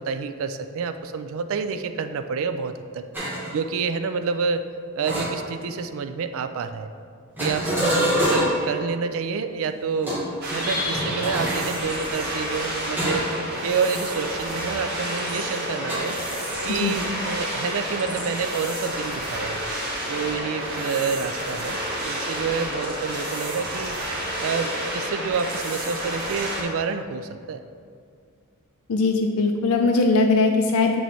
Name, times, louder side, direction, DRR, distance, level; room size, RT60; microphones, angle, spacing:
voice 1, 0.0-3.1 3.5-4.6 5.0-6.9 7.4-10.2 10.5-13.3 13.6-16.2 16.6-19.6 20.1-21.8 22.0-24.0 24.4-27.6, right 5 dB, 65° right, 9 dB, 0.3 m, -28 dB
sound 1, 3.1-3.5 5.0-5.8 7.4-8.8 10.0-11.7 13.0-13.4 13.8-14.0 15.9-16.0, equal, 10° right, 1.1 m, -25 dB
sound 2, 10.4-26.6, equal, 45° right, 1.2 m, -30 dB
voice 2, 28.9-31.0, left 3 dB, 70° left, 2 dB, 0.4 m, -20 dB
7.5 x 3.1 x 4.0 m, 2.3 s
head